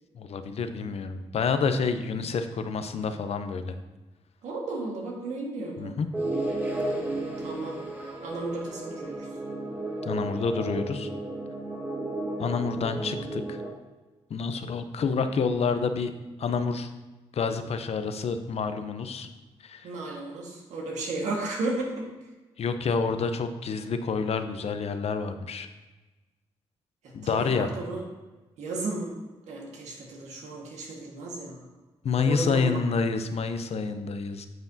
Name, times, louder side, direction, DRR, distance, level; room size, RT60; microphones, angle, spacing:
voice 1, 0.1-3.8 5.8-6.1 10.0-11.1 12.4-13.6 14.3-16.1 16.4-16.9 17.3-19.3 19.6-19.9 22.6-25.7 27.1-27.7 32.0-34.5, left 5 dB, 65° left, 9 dB, 0.7 m, -28 dB
voice 2, 4.4-6.0 7.4-7.8 8.2-9.3 19.8-22.1 27.0-28.0 28.6-29.2 29.5-31.7 32.2-32.8, right 2 dB, 90° right, -1 dB, 1.6 m, -34 dB
sound 1, 6.1-13.7, right 2 dB, 15° right, 1.8 m, -33 dB
9.4 x 7.0 x 2.7 m, 1.2 s
cardioid pair, 70°, 12 cm